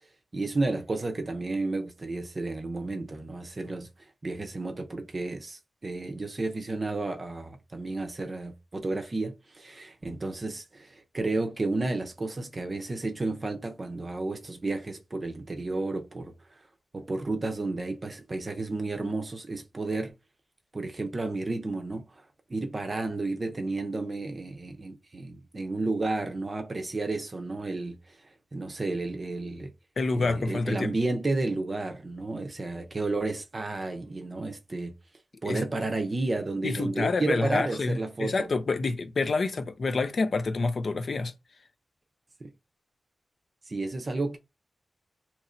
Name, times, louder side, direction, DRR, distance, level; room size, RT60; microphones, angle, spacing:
voice 1, 0.3-3.9 4.2-16.3 16.9-20.1 20.7-22.2 22.5-28.1 28.5-29.7 30.1-34.9 35.4-38.5 42.4-42.5 43.7-44.4, right 2 dB, 30° right, 0.6 m, -32 dB
voice 2, 30.0-30.9 35.5-35.6 36.6-41.3, left 3 dB, 50° left, 0.5 m, -28 dB
2.9 x 2.5 x 4.2 m
wide cardioid pair, 175°, 0 cm